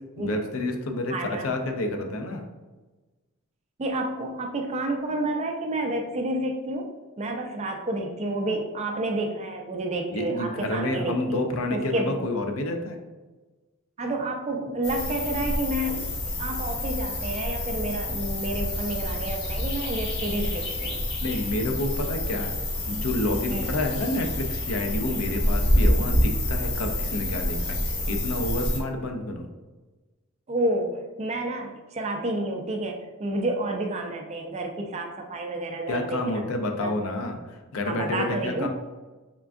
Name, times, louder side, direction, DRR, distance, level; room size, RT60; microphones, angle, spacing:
voice 1, 0.2-2.4 10.1-13.0 21.2-22.6 22.9-29.5 35.9-38.7, left 2 dB, 70° left, 5 dB, 0.5 m, -29 dB
voice 2, 1.1-1.5 3.8-11.4 11.7-12.2 14.0-16.1 16.4-21.0 23.5-23.8 30.5-36.4 36.8-36.9 37.9-38.7, right 1 dB, 30° right, 3 dB, 0.4 m, -30 dB
sound 1, 14.8-28.8, left 1 dB, 50° left, 0.9 m, -27 dB
3.6 x 3.4 x 2.4 m, 1.2 s
head